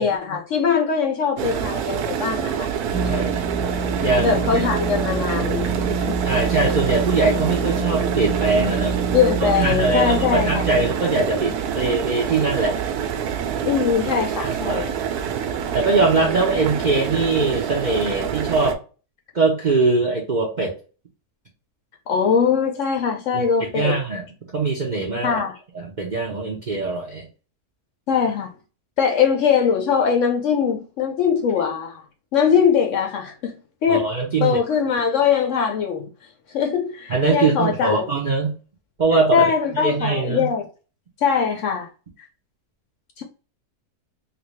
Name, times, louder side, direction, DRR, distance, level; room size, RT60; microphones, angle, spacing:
voice 1, 0.0-2.7 4.2-6.2 9.1-10.7 13.6-14.9 22.1-24.0 25.2-25.6 28.1-28.5 29.0-32.0 32.3-34.1 34.4-36.1 36.5-38.1 39.3-40.7 41.2-41.9 43.2-43.3, left 7 dB, 65° left, 0.8 m, -21 dB
sound 1, 1.4-18.7, right 8 dB, 75° right, 1.0 m, -26 dB
sound 2, 2.9-11.0, right 4 dB, ahead, 0.7 m, -27 dB
voice 2, 2.9-3.4 4.0-4.7 5.4-5.8 6.2-9.0 9.4-12.8 14.0-14.1 14.4-14.9 15.7-18.8 19.3-20.7 23.3-23.4 23.7-24.3 24.5-25.4 25.7-27.3 33.9-34.6 37.1-38.5 39.0-40.5, right 3 dB, 50° right, 0.5 m, -22 dB
3.4 x 2.7 x 3.1 m
omnidirectional pair, 1.7 m